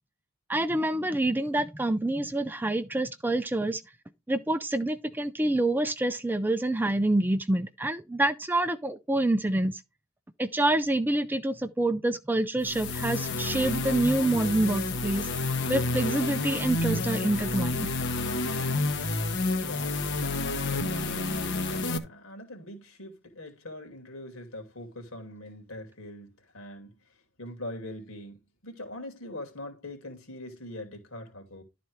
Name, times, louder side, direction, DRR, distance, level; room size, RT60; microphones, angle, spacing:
voice 1, 0.5-3.8 4.3-9.8 10.4-15.3 15.7-17.9, right 1 dB, 10° right, 0.4 m, -27 dB
sound 1, 12.6-22.0, left 2 dB, 55° left, 1.1 m, -29 dB
voice 2, 19.6-28.4 28.6-31.6, left 1 dB, 70° left, 2.6 m, -43 dB
11.5 x 4.2 x 4.7 m
head